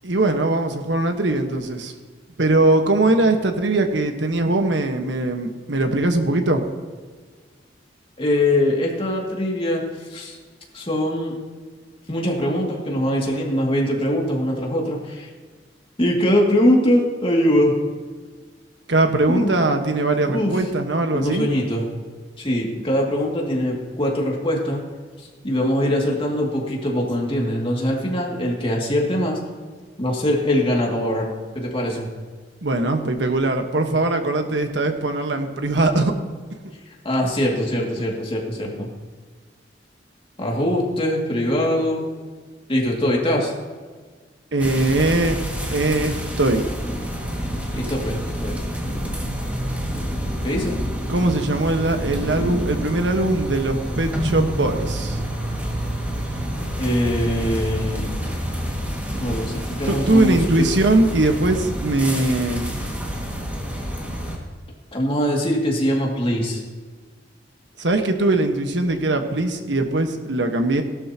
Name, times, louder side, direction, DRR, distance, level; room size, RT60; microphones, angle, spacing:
voice 1, 0.0-1.9 2.4-6.7 18.9-21.5 32.6-36.1 44.5-45.4 45.7-46.7 51.1-55.2 59.9-62.7 67.8-70.8, right 2 dB, 85° right, 5 dB, 1.4 m, -21 dB
voice 2, 8.2-9.8 10.1-10.4 10.7-11.3 12.1-15.3 16.0-17.8 19.3-19.5 20.3-20.6 21.1-21.9 22.4-24.8 25.2-29.4 30.0-31.3 31.5-32.1 37.0-38.9 40.4-42.0 42.7-43.5 47.7-48.5 50.4-50.8 56.8-58.3 59.2-60.7 64.9-66.6, left 1 dB, 30° left, -2 dB, 2.4 m, -22 dB
sound 1, 44.6-64.4, equal, 10° right, 2.0 m, -28 dB
17.5 x 12.0 x 2.9 m, 1.5 s
head